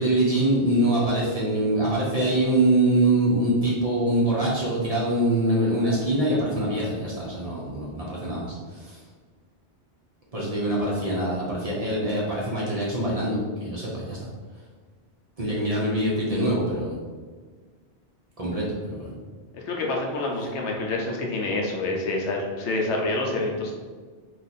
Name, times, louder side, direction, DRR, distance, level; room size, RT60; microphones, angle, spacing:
voice 1, 0.0-9.0 10.3-14.2 15.4-16.9 18.4-19.1, right 1 dB, 40° right, -6 dB, 0.7 m, -24 dB
voice 2, 19.5-23.7, left 2 dB, 75° left, 0 dB, 0.9 m, -27 dB
2.9 x 2.4 x 3.9 m, 1.5 s
omnidirectional pair, 1.2 m